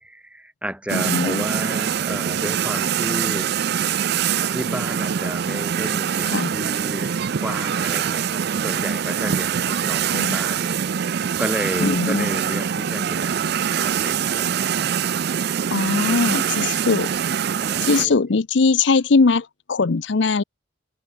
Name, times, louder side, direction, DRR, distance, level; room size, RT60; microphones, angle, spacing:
voice 1, 0.0-3.5 4.5-14.9 16.0-16.6 17.5-18.1, equal, 5° right, 2.6 m, -32 dB
voice 2, 0.9-1.4 6.3-6.5 10.1-10.4 11.8-12.3 15.7-17.1 17.8-20.4, left 4 dB, 65° left, 0.6 m, -20 dB
sound 1, 0.9-18.1, right 8 dB, 55° right, 0.4 m, -24 dB
head